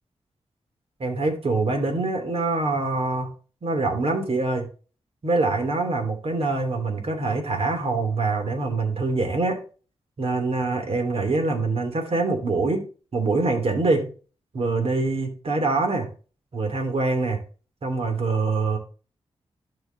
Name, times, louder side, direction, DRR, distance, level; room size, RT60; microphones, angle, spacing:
voice 1, 1.0-3.3 3.6-4.7 5.2-9.6 10.2-12.8 13.1-14.1 14.5-16.1 16.5-17.4 17.8-18.8, right 3 dB, 60° right, 2.8 m, -24 dB
12.5 x 5.3 x 2.7 m
cardioid pair, 55°, 11 cm